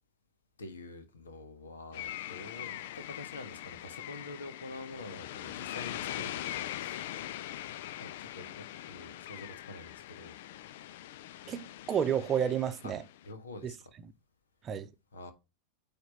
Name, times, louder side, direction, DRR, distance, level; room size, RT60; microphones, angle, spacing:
voice 1, 0.6-7.2 8.0-10.4 10.7-10.8 12.8-13.0 13.2-13.9 15.1-15.3, left 2 dB, 70° left, 1.5 m, -47 dB
sound 1, 1.9-13.3, left 13 dB, 55° left, 0.4 m, -42 dB
voice 2, 11.5-13.0 13.6-13.7 14.6-14.9, right 8 dB, 25° right, 0.8 m, -30 dB
9.2 x 3.7 x 4.2 m
figure-of-eight pair, 90°, 0 cm